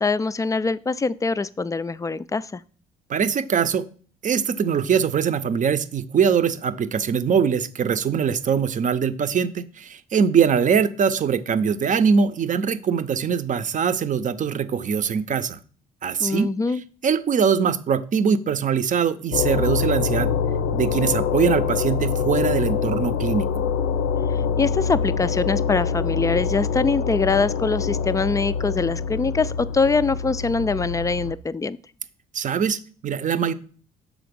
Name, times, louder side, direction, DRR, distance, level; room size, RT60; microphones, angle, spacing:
voice 1, 0.0-2.6 16.2-16.8 24.3-31.8, left 4 dB, 20° left, 17 dB, 0.3 m, -23 dB
voice 2, 3.1-3.8 4.2-15.6 16.0-16.5 17.0-20.3 20.7-23.5 32.3-33.5, right 7 dB, 45° right, 12 dB, 0.6 m, -22 dB
sound 1, 19.3-31.3, left 6 dB, 80° left, 0.6 m, -25 dB
6.1 x 3.8 x 5.2 m, 0.43 s
supercardioid pair, 70°, 19 cm